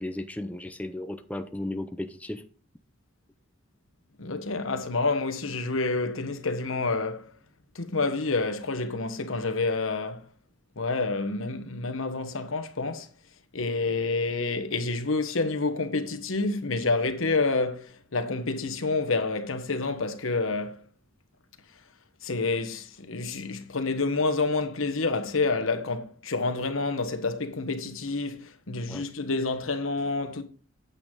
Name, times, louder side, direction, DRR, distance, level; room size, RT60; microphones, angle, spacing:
voice 1, 0.0-2.4 28.9-29.1, left 1 dB, 5° left, 0.6 m, -35 dB
voice 2, 4.2-7.3 7.7-10.3 10.8-13.1 13.5-20.8 22.2-30.4, left 3 dB, 75° left, 1.3 m, -28 dB
9.2 x 8.5 x 3.9 m
head